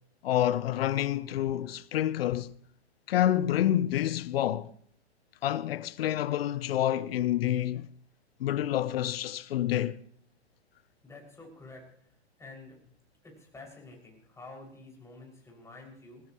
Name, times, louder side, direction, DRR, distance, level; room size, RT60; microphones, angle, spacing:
voice 1, 0.2-2.5 3.1-4.7 5.4-7.9 8.4-10.0, left 12 dB, 60° left, 0.9 m, -28 dB
voice 2, 11.0-12.8 13.2-16.2, left 2 dB, 10° left, 6.2 m, -49 dB
21.0 x 19.0 x 3.1 m
hypercardioid pair, 120°, 33 cm